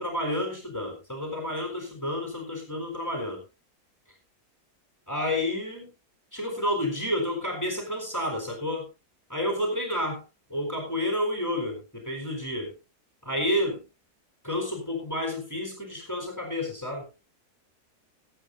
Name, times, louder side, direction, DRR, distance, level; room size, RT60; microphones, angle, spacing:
voice 1, 0.0-3.4 5.1-5.9 6.3-8.9 9.3-10.2 10.5-12.7 13.2-13.8 14.4-17.1, left 1 dB, 10° left, 1 dB, 4.0 m, -30 dB
21.0 x 9.2 x 2.6 m, 0.27 s
omnidirectional pair, 1.7 m